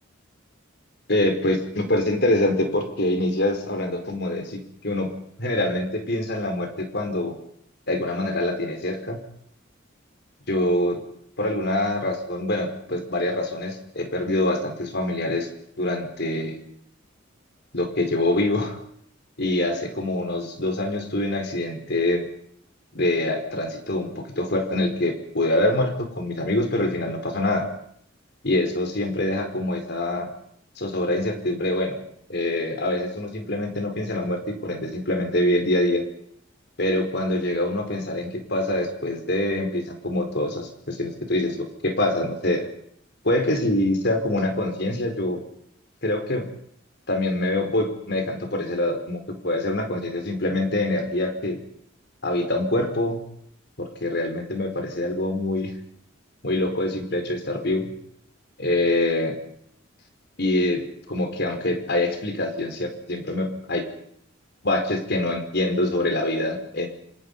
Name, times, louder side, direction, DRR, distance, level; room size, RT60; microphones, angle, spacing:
voice 1, 1.1-7.4 7.9-9.2 10.5-11.0 11.4-15.5 15.8-16.6 17.7-18.8 19.4-22.3 22.9-27.7 28.4-30.3 30.8-32.0 32.3-36.0 36.8-42.7 43.2-45.4 46.0-46.5 47.1-49.2 49.4-51.6 52.2-53.2 53.8-55.7 56.4-57.9 58.6-59.3 60.4-63.8 64.6-66.9, left 1 dB, 60° left, 5 dB, 4.7 m, -25 dB
27.0 x 26.5 x 5.6 m, 0.71 s
head